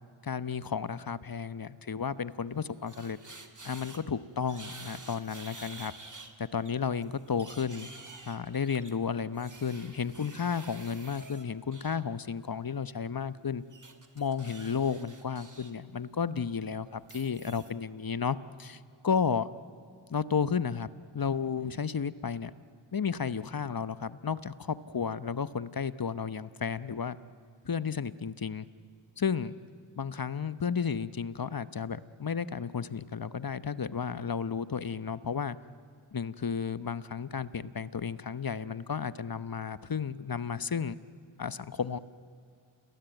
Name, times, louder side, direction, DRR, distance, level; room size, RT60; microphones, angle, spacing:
voice 1, 0.2-3.2 3.6-5.9 6.4-7.9 8.3-13.6 14.1-19.5 20.1-20.9 21.1-22.5 22.9-27.2 27.6-28.7 29.2-29.6 30.0-35.6 36.1-41.0 41.4-42.0, left 6 dB, 45° left, 15 dB, 1.0 m, -33 dB
sound 1, 2.5-4.0 4.4-6.3 6.7-12.0 13.7-15.7 16.1-16.3 17.0-17.7, right 3 dB, 40° right, 2.6 m, -49 dB
29.0 x 20.5 x 9.1 m, 2.3 s
cardioid pair, 55°, 49 cm